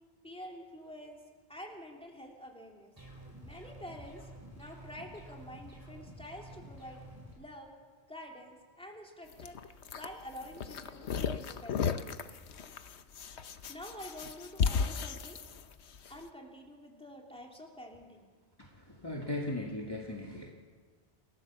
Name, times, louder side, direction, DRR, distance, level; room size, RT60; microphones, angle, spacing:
voice 1, 0.2-1.2 1.5-2.9 3.4-4.3 4.6-7.0 7.4-7.7 8.1-9.6 9.9-12.2 13.7-15.4 16.1-18.3, equal, 5° left, 0 dB, 2.9 m, -48 dB
sound 1, 3.0-7.3, right 1 dB, 20° right, 5.4 m, -50 dB
sound 2, 9.3-16.1, left 6 dB, 80° left, 1.2 m, -35 dB
voice 2, 18.6-20.5, left 1 dB, 20° left, -2 dB, 2.2 m, -38 dB
28.5 x 15.0 x 7.3 m, 1.5 s
omnidirectional pair, 1.1 m